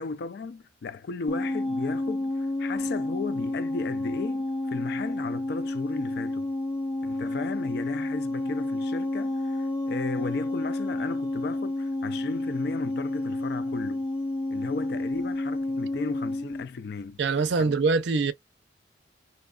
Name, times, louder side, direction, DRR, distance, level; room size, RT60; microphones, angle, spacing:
voice 1, 0.0-6.5 7.0-14.0 14.5-17.2 17.6-17.7, left 4 dB, 60° left, 0.3 m, -35 dB
sound 1, 1.3-16.6, left 2 dB, 25° left, 0.8 m, -30 dB
voice 2, 17.2-18.3, right 4 dB, 70° right, 0.5 m, -23 dB
2.7 x 2.2 x 2.3 m
head